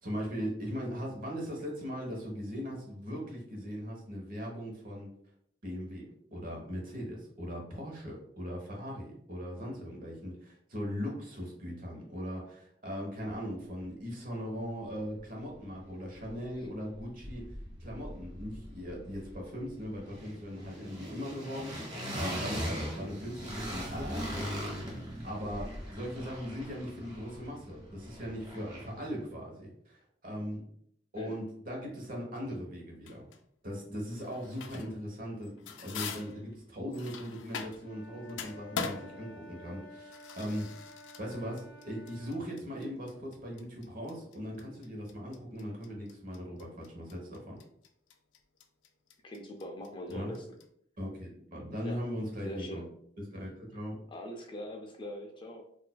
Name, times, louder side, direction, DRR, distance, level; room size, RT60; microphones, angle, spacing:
voice 1, 0.0-5.1 5.6-17.5 17.8-30.6 31.1-33.3 33.6-40.7 41.2-47.6 50.1-50.3 51.0-52.9 53.2-54.0, equal, 50° right, -1 dB, 1.0 m, -39 dB
sound 1, 15.1-15.2 15.5-16.7 16.9-29.1, equal, 25° right, 1.0 m, -40 dB
sound 2, 33.1-33.4 34.1-35.0 35.4-38.0 38.3-50.7, left 6 dB, 90° left, 0.4 m, -43 dB
Wind instrument woodwind instrument, 37.8-42.5, left 1 dB, 60° left, 0.7 m, -52 dB
voice 2, 49.2-50.5 51.8-52.1 52.4-52.9 54.1-55.6, equal, 25° left, 2 dB, 0.5 m, -42 dB
4.0 x 2.6 x 2.2 m, 0.67 s
head